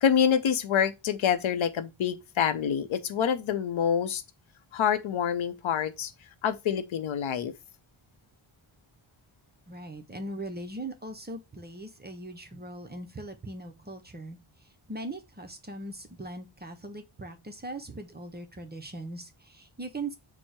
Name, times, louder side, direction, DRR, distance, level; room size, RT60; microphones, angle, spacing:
voice 1, 0.0-4.2 4.7-6.1 6.4-7.5, left 8 dB, 70° left, 0.6 m, -26 dB
voice 2, 9.7-20.2, right 2 dB, 20° right, 0.5 m, -40 dB
4.4 x 2.1 x 4.5 m
wide cardioid pair, 155°, 49 cm